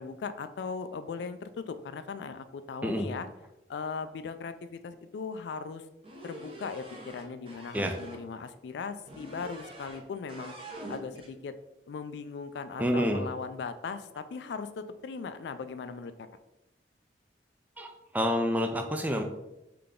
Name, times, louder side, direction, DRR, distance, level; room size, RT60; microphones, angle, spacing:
voice 1, 0.0-3.3 3.7-5.9 6.2-10.5 10.9-11.6 11.9-16.3, left 5 dB, 75° left, 11 dB, 0.3 m, -38 dB
sound 1, 6.0-8.2 9.1-10.0 10.3-11.3, right 1 dB, 30° right, 0.7 m, -45 dB
voice 2, 12.8-13.2 17.8-19.2, equal, 10° right, 5 dB, 0.3 m, -28 dB
3.9 x 3.3 x 3.6 m, 0.94 s
head